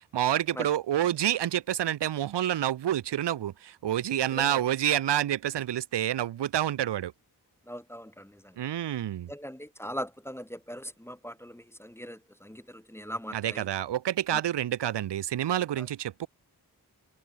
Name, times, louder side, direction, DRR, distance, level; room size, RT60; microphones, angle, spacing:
voice 1, 0.1-7.1 8.6-9.3 13.3-16.3, right 11 dB, 90° right, 0.6 m, -28 dB
voice 2, 7.7-8.3 9.3-13.6, equal, 5° left, 0.7 m, -40 dB
cardioid pair, 45°, 40 cm